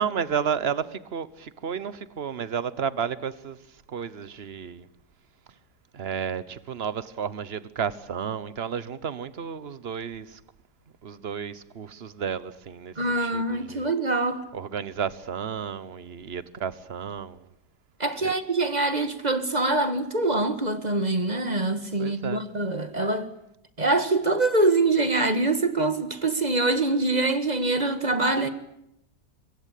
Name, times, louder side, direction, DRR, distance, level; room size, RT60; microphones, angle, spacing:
voice 1, 0.0-4.9 5.9-10.4 11.0-13.9 14.5-17.5 18.2-18.3 22.0-22.4, right 7 dB, 40° right, 1.2 m, -32 dB
voice 2, 13.0-14.4 18.0-23.3 23.8-28.5, right 2 dB, 25° right, 1.8 m, -24 dB
26.0 x 23.0 x 8.5 m
omnidirectional pair, 1.8 m